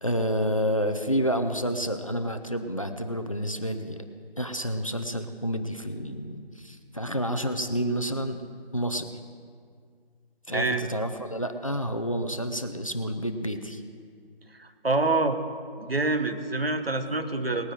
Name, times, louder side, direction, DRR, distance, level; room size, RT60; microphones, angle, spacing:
voice 1, 0.0-4.1 4.4-8.4 8.7-9.1 10.5-13.8, equal, 35° left, 8 dB, 0.6 m, -29 dB
voice 2, 10.5-10.8 14.6-15.4 15.8-17.7, right 3 dB, 70° right, 7 dB, 1.3 m, -26 dB
19.5 x 9.4 x 4.4 m, 2.1 s
figure-of-eight pair, 165°, 31 cm